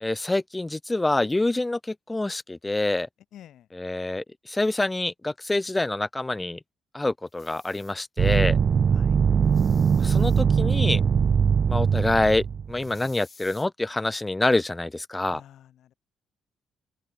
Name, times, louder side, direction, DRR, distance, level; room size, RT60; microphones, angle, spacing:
voice 1, 0.0-3.1 3.7-6.6 6.9-8.6 10.0-11.0 11.7-15.4, left 2 dB, 15° left, 0.6 m, -26 dB
voice 2, 3.3-3.7 8.9-9.2 15.3-15.9, left 11 dB, 75° left, 4.5 m, -49 dB
sound 1, 7.3-7.9 9.4-10.4 12.7-13.7, left 4 dB, 30° left, 6.5 m, -53 dB
sound 2, 8.2-12.7, right 7 dB, 50° right, 0.5 m, -21 dB
open air
cardioid pair, 90°, 0 cm